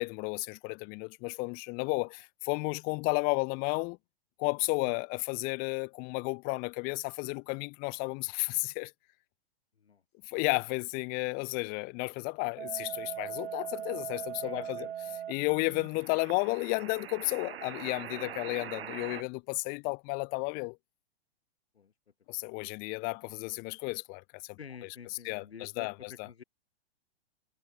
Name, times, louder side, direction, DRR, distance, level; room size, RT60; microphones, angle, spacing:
voice 1, 0.0-4.0 4.4-8.9 10.2-14.9 15.3-20.8 22.3-24.6 25.2-26.3, left 32 dB, 30° left, 0.6 m, -33 dB
sound 1, 12.6-19.2, right 10 dB, 70° right, 1.2 m, -41 dB
voice 2, 14.4-15.2 15.7-15.8 18.2-18.4 21.7-21.9 22.3-22.4 24.6-26.4, left 7 dB, 80° left, 1.9 m, -49 dB
hypercardioid pair, 110°, 31 cm